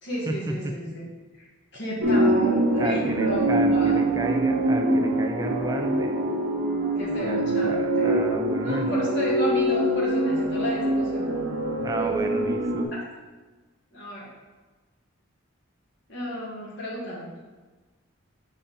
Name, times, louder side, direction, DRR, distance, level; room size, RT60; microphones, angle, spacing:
voice 1, 0.0-1.1 1.3-1.4 1.7-4.0 7.0-8.2 8.6-11.3 12.0-12.1 12.9-13.0 13.9-14.3 16.1-17.3, equal, 55° left, -5 dB, 1.5 m, -33 dB
sound 1, 2.0-12.8, right 1 dB, 85° right, 1.0 m, -24 dB
voice 2, 2.8-6.1 7.1-9.0 11.8-12.9, right 1 dB, 15° right, 3 dB, 0.4 m, -32 dB
6.7 x 4.2 x 3.8 m, 1.3 s
head